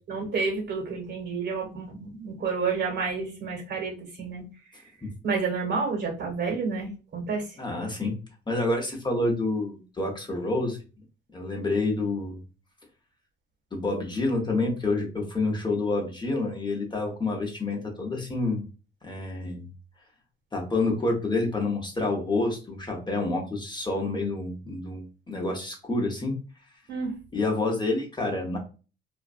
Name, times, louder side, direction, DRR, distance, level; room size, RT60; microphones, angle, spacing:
voice 1, 0.1-4.4 5.2-7.4 26.9-27.1, right 4 dB, 60° right, 0 dB, 1.3 m, -30 dB
voice 2, 7.6-8.1 8.5-10.8 11.3-12.4 13.7-18.6 19.0-19.7 20.5-26.4 27.3-28.6, left 2 dB, 20° left, 0 dB, 0.8 m, -28 dB
2.5 x 2.2 x 2.4 m, 0.34 s
cardioid pair, 90°, 20 cm